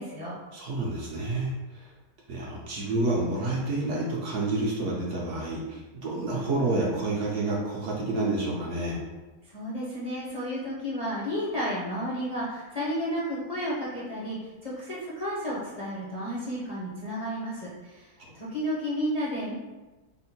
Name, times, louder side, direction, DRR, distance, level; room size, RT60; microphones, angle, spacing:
voice 1, 0.0-0.3 9.5-19.5, equal, 35° left, -8 dB, 0.6 m, -32 dB
voice 2, 0.5-1.9 2.3-9.0, right 2 dB, 60° right, -3 dB, 0.9 m, -29 dB
3.6 x 2.1 x 4.2 m, 1.1 s
omnidirectional pair, 1.6 m